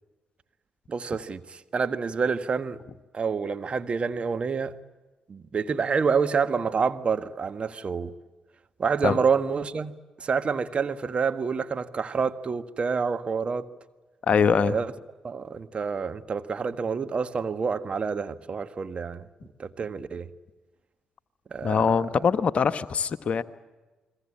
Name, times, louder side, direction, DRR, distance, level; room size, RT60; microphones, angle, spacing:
voice 1, 0.9-2.8 3.1-4.7 5.3-8.1 8.8-9.9 10.2-13.7 14.6-14.9 15.2-20.3 21.5-22.0, right 5 dB, 45° right, 1.5 m, -28 dB
voice 2, 14.3-14.8 21.6-23.4, left 6 dB, 55° left, 1.2 m, -23 dB
29.5 x 22.0 x 8.8 m
hypercardioid pair, 40°, 3 cm